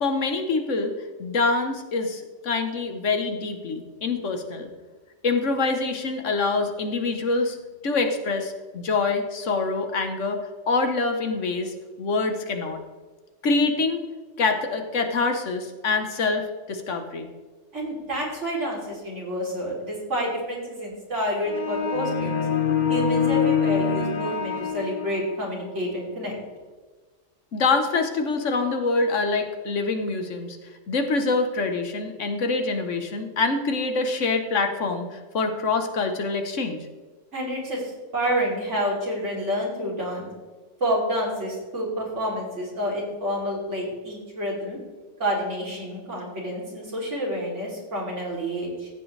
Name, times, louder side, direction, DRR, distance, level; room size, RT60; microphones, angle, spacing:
voice 1, 0.0-0.9 1.2-4.7 5.2-7.6 7.8-10.4 10.7-12.8 13.4-14.0 14.4-17.3 27.5-30.6 30.9-36.8, left 3 dB, 90° left, 6 dB, 1.6 m, -25 dB
voice 2, 17.7-22.5 22.9-26.4 37.3-40.3 40.8-44.8 45.2-48.9, equal, 80° right, -3 dB, 3.7 m, -29 dB
sound 1, 21.5-25.4, left 6 dB, 45° left, 0.8 m, -25 dB
14.5 x 8.9 x 3.4 m, 1.4 s
omnidirectional pair, 1.2 m